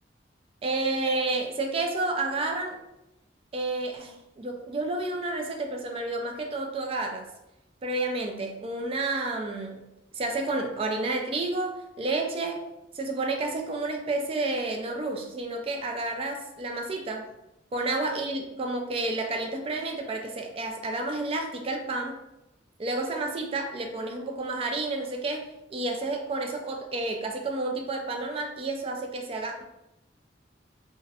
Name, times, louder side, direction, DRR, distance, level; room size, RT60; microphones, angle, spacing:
voice 1, 0.6-2.8 3.5-7.3 7.8-9.9 10.1-12.6 12.9-17.3 17.7-22.2 22.8-29.6, right 2 dB, 35° right, 3 dB, 0.3 m, -30 dB
2.4 x 2.0 x 2.6 m, 0.88 s
head